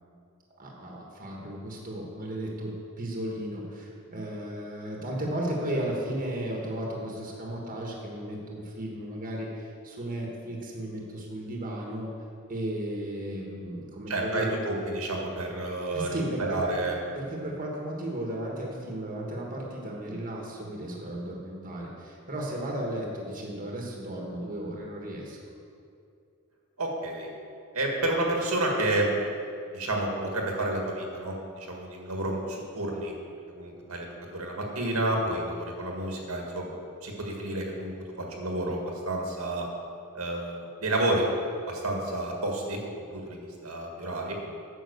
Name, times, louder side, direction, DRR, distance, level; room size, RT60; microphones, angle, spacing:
voice 1, 0.6-12.1 12.5-14.5 15.9-16.8 17.1-25.4, right 1 dB, 40° right, -2 dB, 1.3 m, -34 dB
voice 2, 14.1-17.0 26.8-27.3 27.7-29.1 29.7-33.1 33.6-34.1 34.3-39.7 40.1-41.3 41.6-44.4, right 1 dB, 80° right, 0 dB, 1.8 m, -30 dB
9.3 x 5.7 x 6.8 m, 2.5 s
head